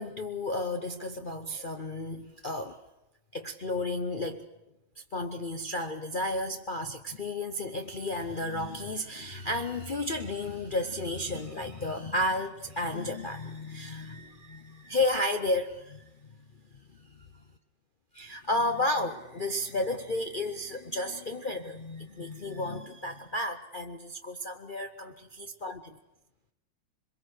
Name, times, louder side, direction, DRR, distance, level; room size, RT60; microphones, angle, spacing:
voice 1, 0.0-2.8 3.3-4.5 5.1-16.3 18.2-26.0, left 1 dB, 65° left, 4 dB, 0.5 m, -32 dB
24.0 x 22.0 x 6.4 m, 0.93 s
omnidirectional pair, 2.2 m